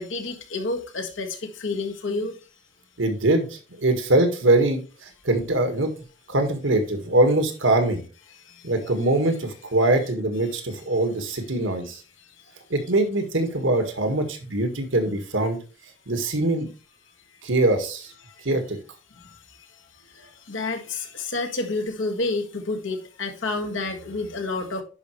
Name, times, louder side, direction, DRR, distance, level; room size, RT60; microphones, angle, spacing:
voice 1, 0.0-2.4 8.3-8.7 18.2-18.3 19.1-19.7 20.0-24.8, left 3 dB, 80° left, 3 dB, 1.7 m, -30 dB
voice 2, 3.0-3.5 3.8-4.8 5.2-5.9 6.3-8.0 8.6-12.0 12.7-15.6 16.1-16.7 17.4-18.1 18.4-18.8, right 2 dB, 80° right, 6 dB, 1.7 m, -22 dB
10.5 x 5.4 x 3.1 m, 0.35 s
head